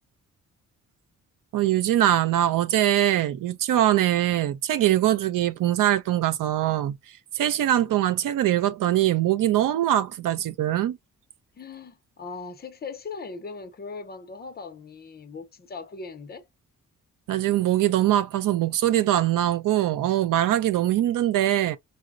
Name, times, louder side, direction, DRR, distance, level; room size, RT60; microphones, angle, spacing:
voice 1, 1.5-11.0 17.3-21.8, right 13 dB, 80° right, 0.5 m, -22 dB
voice 2, 11.6-16.5, left 4 dB, 30° left, 0.5 m, -39 dB
4.1 x 2.0 x 2.3 m
wide cardioid pair, 150°, 32 cm